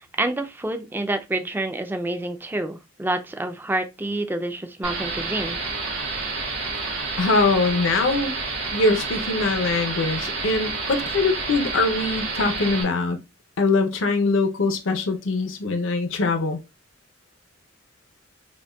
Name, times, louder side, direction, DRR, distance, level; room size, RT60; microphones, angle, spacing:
voice 1, 0.2-5.6, right 2 dB, 10° right, 0.3 m, -28 dB
sound 1, 4.8-12.8, right 3 dB, 70° right, 1.4 m, -29 dB
voice 2, 7.2-8.3 8.7-13.2 13.6-16.6, left 3 dB, 75° left, 0.6 m, -22 dB
5.1 x 2.2 x 2.2 m
head